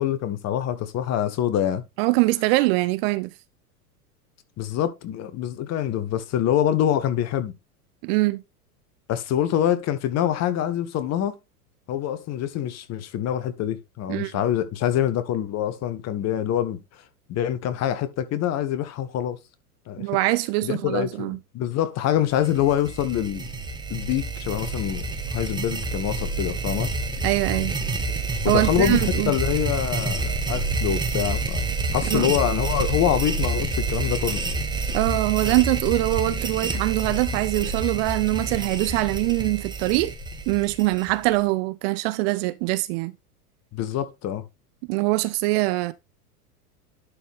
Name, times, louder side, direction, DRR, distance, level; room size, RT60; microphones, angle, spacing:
voice 1, 0.0-1.8 4.6-7.5 9.1-11.4 11.9-16.8 17.3-19.4 19.9-20.1 20.6-23.5 23.9-26.9 28.4-31.6 31.9-34.4 43.7-44.4, left 10 dB, 35° left, 1.2 m, -25 dB
voice 2, 2.0-3.3 8.0-8.4 14.1-14.3 20.0-21.4 27.2-27.8 28.5-29.3 32.1-32.3 34.9-40.1 40.5-43.1 44.9-45.9, right 20 dB, 40° right, 0.5 m, -23 dB
sound 1, 22.3-41.4, right 3 dB, 10° right, 1.2 m, -28 dB
11.5 x 4.1 x 3.5 m
hypercardioid pair, 95°, 46 cm